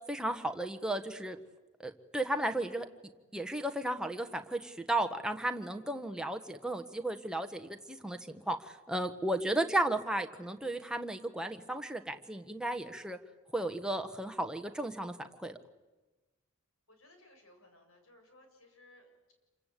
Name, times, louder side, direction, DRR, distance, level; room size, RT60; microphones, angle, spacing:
voice 1, 0.1-1.4 1.8-2.9 3.3-8.6 8.9-13.2 13.5-15.1 15.4-15.6, right 1 dB, 5° right, 5 dB, 1.4 m, -34 dB
voice 2, 16.9-19.3, left 1 dB, 70° left, 4 dB, 7.0 m, -61 dB
27.5 x 25.0 x 8.5 m, 1.2 s
head